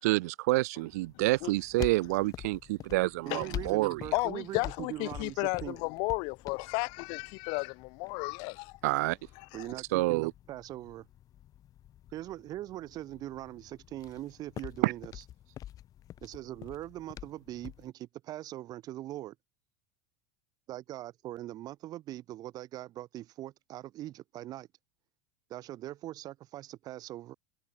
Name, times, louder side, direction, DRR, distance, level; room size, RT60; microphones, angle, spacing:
voice 1, 0.0-4.0 8.8-9.2 9.9-10.3 14.8-14.9, right 21 dB, 70° right, 0.7 m, -28 dB
sound 1, 0.9-17.9, left 12 dB, 40° left, 6.6 m, -47 dB
voice 2, 1.1-1.5 3.3-3.5 4.1-9.0 9.4-9.7, left 33 dB, 60° left, 0.8 m, -34 dB
voice 3, 3.3-5.8 9.5-11.1 12.1-15.2 16.2-19.4 20.7-24.7 25.5-27.3, right 14 dB, 45° right, 1.7 m, -41 dB
hypercardioid pair, 90°, 9 cm